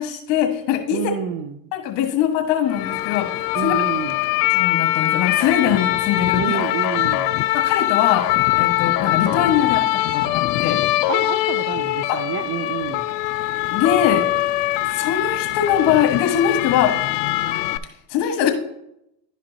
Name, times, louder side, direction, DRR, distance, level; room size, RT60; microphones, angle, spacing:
voice 1, 0.0-1.0 1.7-3.3 3.6-3.8 4.5-6.6 7.5-8.2 8.6-10.8 12.1-12.2 13.7-14.3 14.9-16.9 18.1-18.5, left 9 dB, 60° left, 5 dB, 1.6 m, -21 dB
voice 2, 0.9-1.7 3.5-4.2 6.3-7.3 11.1-13.1, right 9 dB, 50° right, 11 dB, 0.6 m, -29 dB
sound 1, 2.7-17.8, left 16 dB, 80° left, 0.6 m, -22 dB
11.5 x 5.2 x 2.8 m, 0.79 s
supercardioid pair, 95°, 48 cm